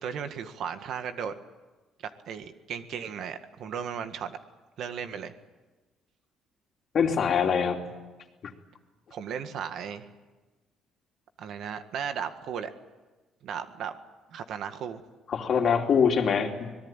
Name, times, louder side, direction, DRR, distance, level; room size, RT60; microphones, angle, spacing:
voice 1, 0.0-1.3 2.0-4.4 4.8-5.3 9.1-10.0 11.4-12.7 13.4-13.9 14.3-15.0, right 7 dB, 70° right, 9 dB, 1.8 m, -35 dB
voice 2, 6.9-7.8 15.3-16.7, left 6 dB, 50° left, 3 dB, 2.9 m, -24 dB
25.5 x 19.0 x 9.1 m, 1.2 s
cardioid pair, 95°, 0 cm